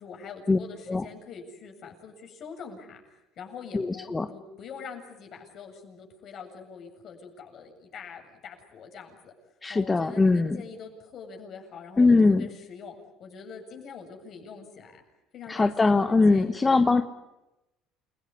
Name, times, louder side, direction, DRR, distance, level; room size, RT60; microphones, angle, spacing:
voice 1, 0.0-9.3 9.7-14.9 15.3-16.9, left 5 dB, 55° left, 3 dB, 7.7 m, -44 dB
voice 2, 3.7-4.3 9.6-10.6 12.0-12.5 15.5-17.0, left 3 dB, 20° left, 8 dB, 1.3 m, -21 dB
29.5 x 18.0 x 9.8 m, 0.97 s
supercardioid pair, 85°, 0 cm